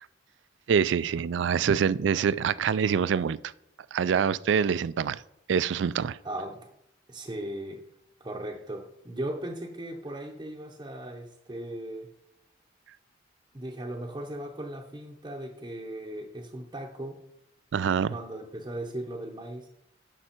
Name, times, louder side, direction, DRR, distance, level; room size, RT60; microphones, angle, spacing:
voice 1, 0.7-3.4 3.9-5.2 5.5-6.2 17.7-18.1, right 7 dB, 70° right, 0.3 m, -25 dB
voice 2, 6.2-6.7 7.1-7.8 8.2-12.1 13.5-17.2 18.1-19.7, right 1 dB, 25° right, 0.7 m, -37 dB
9.9 x 6.0 x 4.4 m
head